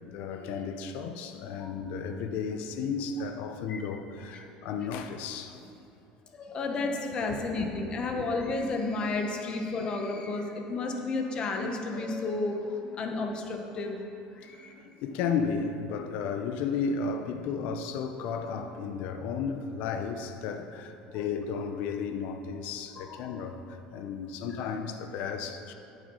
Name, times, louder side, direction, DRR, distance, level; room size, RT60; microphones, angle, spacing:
voice 1, 0.1-5.6 7.3-7.4 12.8-13.0 14.7-25.7, left 5 dB, 70° left, 7 dB, 0.7 m, -33 dB
voice 2, 6.3-14.0 14.3-14.7 21.1-21.2 23.0-23.3 24.6-24.7, left 3 dB, 35° left, 3 dB, 1.0 m, -32 dB
8.4 x 7.2 x 5.5 m, 2.7 s
cardioid pair, 140°, 3 cm